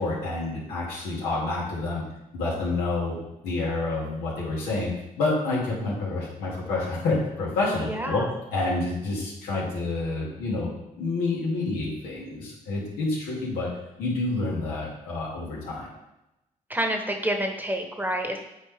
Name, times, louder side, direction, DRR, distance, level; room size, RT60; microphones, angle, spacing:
voice 1, 0.0-2.0 2.3-3.2 3.4-15.9, left 2 dB, 85° left, -5 dB, 2.5 m, -28 dB
voice 2, 7.9-8.3 16.7-18.4, right 1 dB, 10° right, 3 dB, 1.3 m, -28 dB
9.0 x 4.2 x 3.6 m, 0.91 s
supercardioid pair, 60°, 16 cm